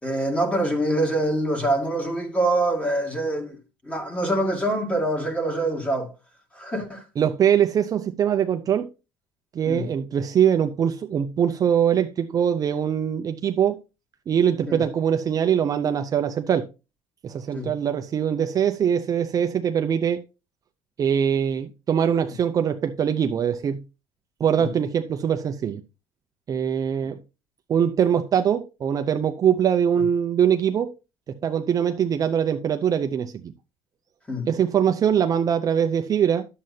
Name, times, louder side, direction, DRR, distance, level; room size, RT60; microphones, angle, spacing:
voice 1, 0.0-3.6 3.8-6.1 6.5-7.0 9.7-9.9 14.7-14.8 17.5-17.7 24.6-24.7 27.0-27.1 34.3-34.5, right 1 dB, 10° left, 2.4 m, -25 dB
voice 2, 7.2-8.9 9.5-13.8 14.3-16.7 17.2-20.2 21.0-23.8 24.4-25.8 26.5-27.2 27.7-30.9 31.3-33.5 34.5-36.5, right 8 dB, 35° right, 0.6 m, -22 dB
11.0 x 7.6 x 2.8 m
cardioid pair, 135°, 11 cm